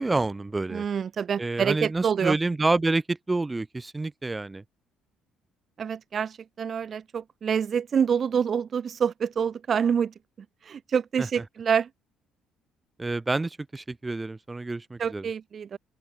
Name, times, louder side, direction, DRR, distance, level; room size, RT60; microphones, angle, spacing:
voice 1, 0.0-0.8 1.4-4.6 13.0-15.2, right 2 dB, 20° right, 4.7 m, -28 dB
voice 2, 0.7-2.4 5.8-10.1 10.7-11.9 15.0-15.8, right 7 dB, 45° right, 7.1 m, -27 dB
open air
cardioid pair, 85°, 0 cm